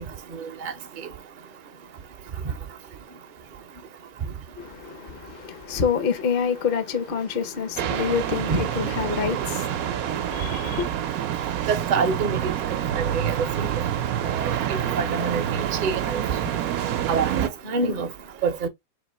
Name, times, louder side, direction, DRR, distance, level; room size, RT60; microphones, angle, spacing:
voice 1, 4.6-10.9, left 7 dB, 50° left, 0.7 m, -27 dB
sound 1, 7.8-17.5, right 10 dB, 70° right, 1.0 m, -27 dB
voice 2, 11.7-12.5 13.0-13.7 14.4-14.5 15.0-16.2 17.1-18.1 18.4-18.7, right 4 dB, 45° right, 0.7 m, -26 dB
3.2 x 2.9 x 4.1 m
omnidirectional pair, 1.6 m